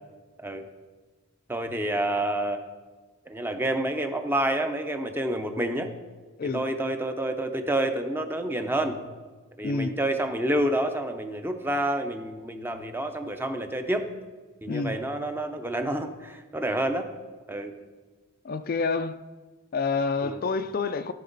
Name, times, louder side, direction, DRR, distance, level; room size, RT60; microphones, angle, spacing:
voice 1, 1.5-2.6 3.3-5.9 6.5-9.0 9.6-14.1 14.6-17.1 17.5-17.7 20.2-20.4, right 1 dB, 10° right, 7 dB, 0.6 m, -28 dB
voice 2, 6.4-6.7 9.6-10.0 14.7-15.0 18.4-19.2 19.7-21.1, left 4 dB, 45° left, 11 dB, 0.3 m, -28 dB
17.0 x 5.8 x 4.0 m, 1.4 s
head